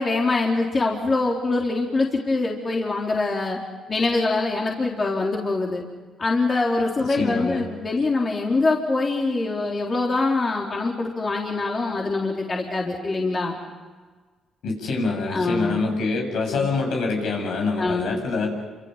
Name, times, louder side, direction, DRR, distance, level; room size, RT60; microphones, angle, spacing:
voice 1, 0.0-3.6 3.9-5.8 6.2-13.5 15.3-15.8 16.5-16.7 17.8-18.2, left 3 dB, 35° left, -1 dB, 4.0 m, -24 dB
voice 2, 7.2-7.6 14.6-18.6, left 3 dB, 75° left, 2 dB, 7.3 m, -25 dB
29.5 x 27.0 x 5.8 m, 1.4 s
cardioid pair, 90°, 0 cm